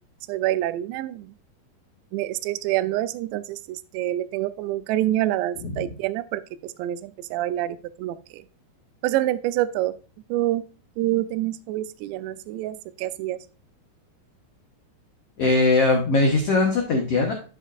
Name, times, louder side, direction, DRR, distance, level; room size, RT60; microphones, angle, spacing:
voice 1, 0.3-1.3 2.1-8.4 9.0-10.0 10.3-10.6 11.0-13.4, right 14 dB, 85° right, 14 dB, 2.8 m, -27 dB
voice 2, 5.6-5.9 15.4-17.3, left 3 dB, 90° left, 1 dB, 1.3 m, -20 dB
11.0 x 5.3 x 2.4 m, 0.37 s
omnidirectional pair, 5.0 m